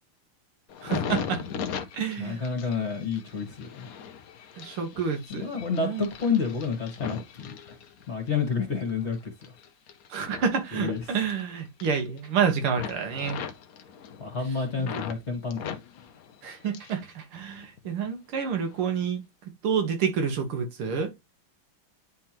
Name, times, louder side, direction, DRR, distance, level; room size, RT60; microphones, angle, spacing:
sound 1, 0.7-8.3 8.8-11.4 11.7-12.4 12.7-15.2 15.5-17.1 17.4-18.1 18.6-18.8, left 7 dB, 60° left, 1.0 m, -39 dB
voice 1, 0.8-1.4 1.9-2.4 4.6-5.5 5.8-6.1 10.1-13.4 14.8-14.9 16.4-19.2 19.6-21.1, right 6 dB, 85° right, 2.2 m, -28 dB
voice 2, 2.2-3.9 5.3-7.6 8.1-9.3 10.7-11.0 14.2-15.8, left 5 dB, 35° left, 2.0 m, -29 dB
10.0 x 3.6 x 2.9 m
omnidirectional pair, 2.3 m